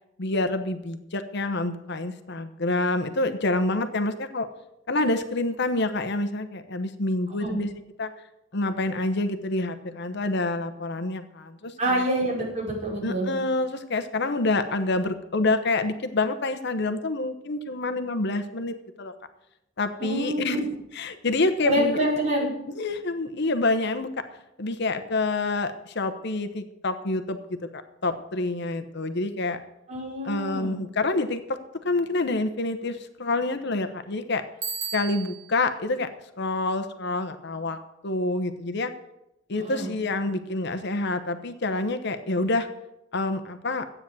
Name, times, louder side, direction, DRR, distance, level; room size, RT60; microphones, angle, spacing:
voice 1, 0.2-4.5 4.9-7.7 8.0-8.1 8.5-12.0 13.0-19.1 19.8-20.7 20.9-22.0 22.8-24.2 24.6-29.6 30.2-31.6 31.8-34.4 34.9-36.1 36.4-38.9 39.5-42.7 43.1-43.8, left 2 dB, 60° left, 9 dB, 1.0 m, -27 dB
voice 2, 11.8-13.3 20.0-20.6 21.6-22.5 29.9-30.8 39.5-39.9, right 1 dB, 35° right, -4 dB, 5.4 m, -27 dB
Bicycle bell, 34.6-35.6, right 6 dB, 75° right, 3.3 m, -34 dB
13.0 x 9.0 x 7.7 m, 0.88 s
head